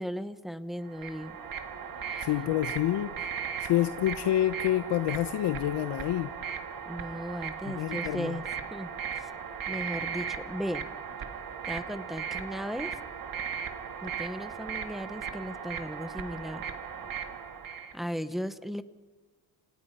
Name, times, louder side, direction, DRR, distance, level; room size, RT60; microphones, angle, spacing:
voice 1, 0.0-1.4 2.0-2.3 6.9-8.4 8.7-8.9 9.2-9.3 9.7-10.9 11.7-13.0 14.0-16.7 17.9-18.8, equal, ahead, 12 dB, 0.8 m, -36 dB
sound 1, 0.9-17.9, right 7 dB, 55° right, 2.0 m, -37 dB
voice 2, 2.2-3.1 3.6-6.3 7.7-8.4, left 13 dB, 85° left, 11 dB, 0.9 m, -28 dB
29.0 x 28.0 x 5.6 m, 1.3 s
cardioid pair, 170°, 41 cm